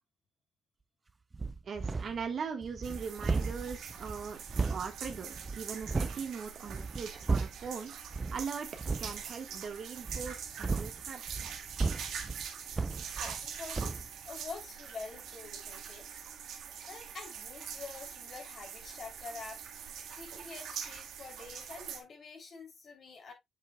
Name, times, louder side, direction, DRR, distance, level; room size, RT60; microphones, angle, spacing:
sound 1, 1.3-2.3 2.6-6.2 6.6-7.7 8.1-8.4 8.8-9.2 10.0-13.5 13.7-14.1, right 4 dB, 25° right, 0.5 m, -35 dB
voice 1, 1.6-4.4 4.7-11.2, right 6 dB, 55° right, 1.5 m, -40 dB
sound 2, 2.8-22.0, right 8 dB, 75° right, 1.7 m, -44 dB
voice 2, 13.2-16.1 16.9-23.3, left 4 dB, 50° left, 3.1 m, -47 dB
7.7 x 7.4 x 2.3 m
cardioid pair, 90°, 0 cm